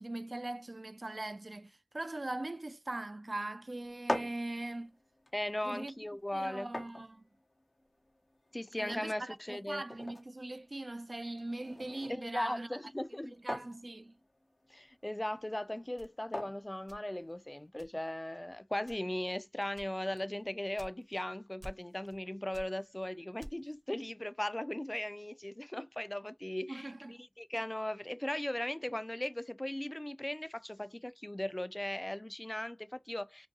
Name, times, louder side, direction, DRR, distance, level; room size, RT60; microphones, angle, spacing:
voice 1, 0.0-5.0 5.6-6.0 6.3-7.2 8.8-12.7 13.2-14.1 26.7-27.2, right 2 dB, 65° right, 0.3 m, -41 dB
sound 1, 3.8-17.7, left 1 dB, 90° left, 0.8 m, -45 dB
voice 2, 5.3-6.7 8.5-9.8 12.1-13.4 14.7-33.5, left 1 dB, 30° left, 0.3 m, -38 dB
sound 2, 16.0-17.4 17.8-18.2 18.8-19.3 19.7-21.3 21.6-22.2 22.5-23.8, equal, 20° right, 0.6 m, -51 dB
2.6 x 2.6 x 2.4 m
wide cardioid pair, 45°, 0 cm